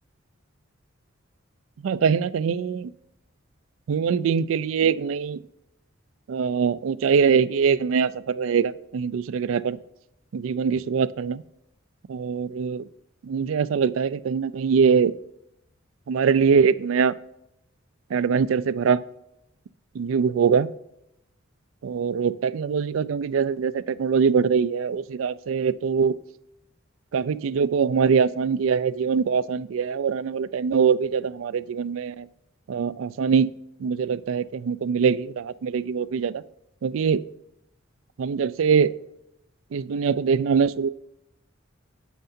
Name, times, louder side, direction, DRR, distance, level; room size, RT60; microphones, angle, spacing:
voice 1, 1.8-2.9 3.9-5.4 6.3-9.8 10.3-11.4 12.1-12.8 13.2-15.1 16.1-17.2 18.1-19.0 19.9-20.7 21.8-26.1 27.1-32.3 32.7-33.5 33.8-36.4 36.8-37.2 38.2-38.9 39.7-40.9, right 6 dB, 75° right, 17 dB, 0.4 m, -23 dB
9.2 x 6.7 x 2.6 m, 0.81 s
head